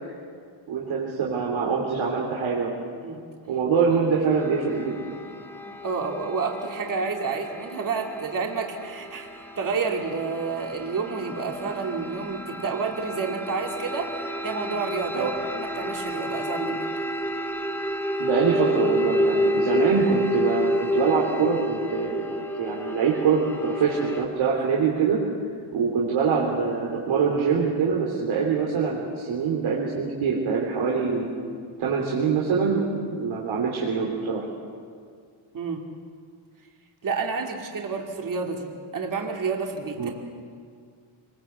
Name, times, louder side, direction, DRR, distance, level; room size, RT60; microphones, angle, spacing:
voice 1, 0.7-2.7 3.5-5.0 15.1-15.3 18.2-22.2 22.6-25.2 25.7-31.3 31.8-34.5 40.0-40.1, right 5 dB, 75° right, -3 dB, 3.5 m, -24 dB
sound 1, 4.3-24.2, left 1 dB, 5° left, 1.7 m, -30 dB
voice 2, 5.8-16.8 35.5-35.9 37.0-40.1, right 4 dB, 40° right, 1 dB, 2.5 m, -30 dB
25.0 x 21.0 x 8.0 m, 2.1 s
cardioid pair, 125°, 48 cm